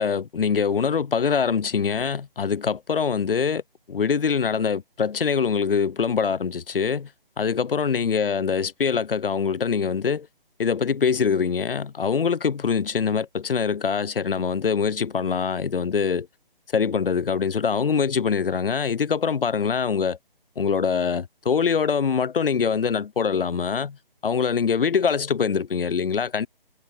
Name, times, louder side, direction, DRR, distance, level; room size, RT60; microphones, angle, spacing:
voice 1, 0.0-3.6 3.9-7.1 7.4-10.3 10.6-16.3 16.7-20.2 20.6-24.0 24.2-26.5, left 6 dB, 70° left, 0.6 m, -24 dB
figure-of-eight pair, 145°, 29 cm